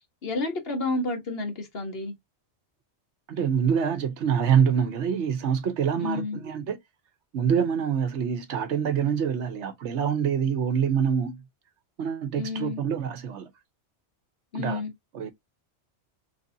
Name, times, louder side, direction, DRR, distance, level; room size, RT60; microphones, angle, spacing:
voice 1, 0.2-2.1 6.0-6.4 12.4-12.8 14.5-14.9, left 3 dB, 55° left, 1.4 m, -30 dB
voice 2, 3.3-6.8 7.3-11.4 12.0-13.5 14.5-14.8 15.1-15.3, right 7 dB, 75° right, 1.0 m, -25 dB
4.1 x 3.3 x 2.6 m
omnidirectional pair, 1.2 m